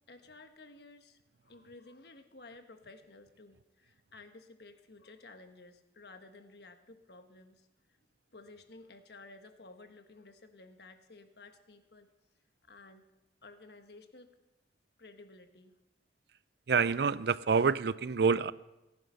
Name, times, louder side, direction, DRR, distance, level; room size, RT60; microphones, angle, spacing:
voice 1, 0.1-8.0 8.3-12.1 12.6-13.0 13.4-14.3 15.0-15.8, left 3 dB, 65° left, 7 dB, 1.3 m, -54 dB
voice 2, 16.7-18.5, right 5 dB, 65° right, 18 dB, 0.4 m, -27 dB
17.5 x 11.0 x 5.6 m, 1.0 s
head